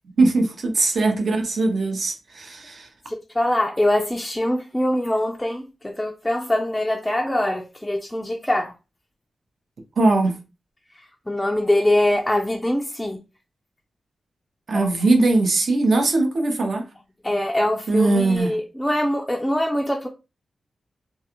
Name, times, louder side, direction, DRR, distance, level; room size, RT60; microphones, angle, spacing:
voice 1, 0.2-2.9 10.0-10.4 14.7-16.9 17.9-18.6, right 2 dB, 60° right, 0.6 m, -20 dB
voice 2, 3.1-8.7 11.3-13.2 14.7-14.9 17.2-20.1, left 1 dB, 10° left, 0.3 m, -23 dB
2.4 x 2.3 x 2.9 m
wide cardioid pair, 100°, 0 cm